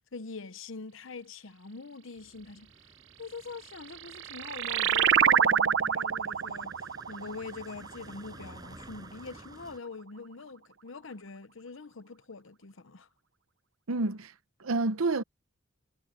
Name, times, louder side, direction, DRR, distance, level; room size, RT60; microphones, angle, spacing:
voice 1, 0.1-2.7 3.2-13.1, left 4 dB, 70° left, 0.8 m, -44 dB
sound 1, 2.2-9.8, right 1 dB, 20° right, 6.7 m, -53 dB
sound 2, 3.8-8.8, right 8 dB, 60° right, 0.6 m, -27 dB
voice 2, 13.9-14.3 14.6-15.2, right 3 dB, 90° right, 0.9 m, -28 dB
head